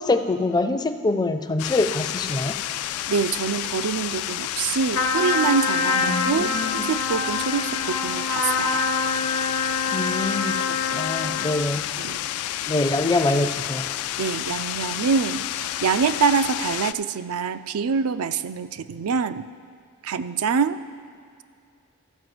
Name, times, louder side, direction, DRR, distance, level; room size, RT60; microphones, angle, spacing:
voice 1, 0.0-2.6 6.0-6.8 9.9-11.9 12.7-13.9, left 2 dB, 20° left, 9 dB, 0.4 m, -25 dB
sound 1, 1.6-16.9, left 13 dB, 85° left, 0.3 m, -30 dB
voice 2, 3.1-8.9 11.7-12.2 13.0-13.1 14.2-19.5 20.0-20.8, right 5 dB, 85° right, 12 dB, 0.4 m, -25 dB
Trumpet, 4.9-11.6, left 4 dB, 65° left, 0.8 m, -26 dB
13.5 x 4.9 x 7.7 m, 2.4 s
head